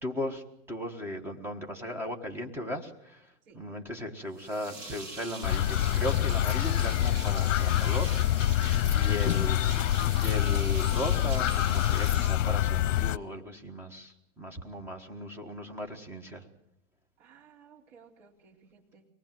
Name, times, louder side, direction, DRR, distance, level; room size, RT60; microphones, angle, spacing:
voice 1, 0.0-8.6 8.9-9.6 10.1-16.5, left 1 dB, 5° right, 3 dB, 1.5 m, -37 dB
sound 1, 4.3-13.1, right 3 dB, 30° right, 7.4 m, -43 dB
sound 2, 5.4-13.2, left 12 dB, 75° left, 0.7 m, -26 dB
voice 2, 17.2-19.1, right 6 dB, 65° right, -2 dB, 3.2 m, -57 dB
24.0 x 19.0 x 7.6 m, 0.83 s
supercardioid pair, 165°, 38 cm